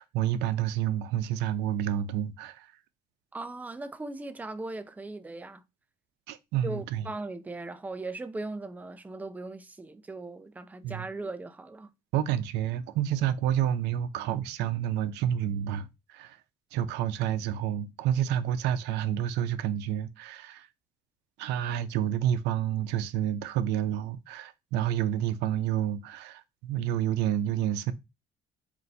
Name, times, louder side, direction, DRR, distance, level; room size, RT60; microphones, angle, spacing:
voice 1, 0.0-2.7 6.3-7.1 10.8-11.1 12.1-16.4 16.7-20.7 21.4-27.9, right 10 dB, 90° right, 0.5 m, -29 dB
voice 2, 3.3-5.6 6.6-11.9, right 2 dB, 10° right, 0.5 m, -38 dB
4.4 x 2.6 x 4.0 m
cardioid pair, 110°, 17 cm